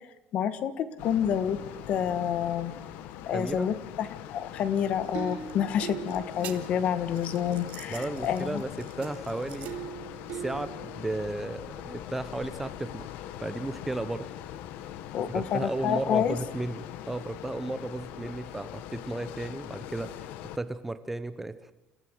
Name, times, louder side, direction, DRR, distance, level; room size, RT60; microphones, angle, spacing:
voice 1, 0.3-1.6 1.9-2.7 3.3-8.6 15.1-16.4, left 9 dB, 40° left, 13 dB, 1.5 m, -28 dB
sound 1, 1.0-20.6, left 11 dB, 65° left, 1.3 m, -42 dB
voice 2, 3.3-3.7 7.9-9.8 10.3-13.1 13.4-14.3 15.3-21.7, right 2 dB, 5° right, 11 dB, 0.7 m, -34 dB
sound 2, 4.8-11.1 12.8-12.9, right 10 dB, 55° right, 2.3 m, -41 dB
29.0 x 15.0 x 7.8 m, 0.90 s
cardioid pair, 180°, 3 cm